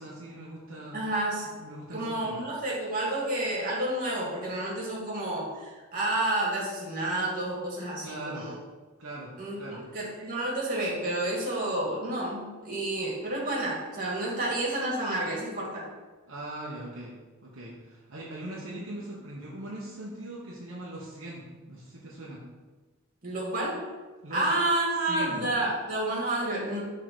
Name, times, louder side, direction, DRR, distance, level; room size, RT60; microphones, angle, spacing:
voice 1, 0.0-1.0 1.4-2.4 8.0-8.5 9.0-9.3 9.6-9.8 16.3-17.1 17.4-22.4 24.2-24.5 25.0-25.4, right 1 dB, 65° right, -5 dB, 1.2 m, -40 dB
voice 2, 0.9-1.5 1.9-8.6 9.4-15.9 23.2-23.8 24.3-26.8, right 1 dB, 40° right, -4 dB, 2.1 m, -30 dB
6.4 x 3.9 x 6.2 m, 1.3 s
head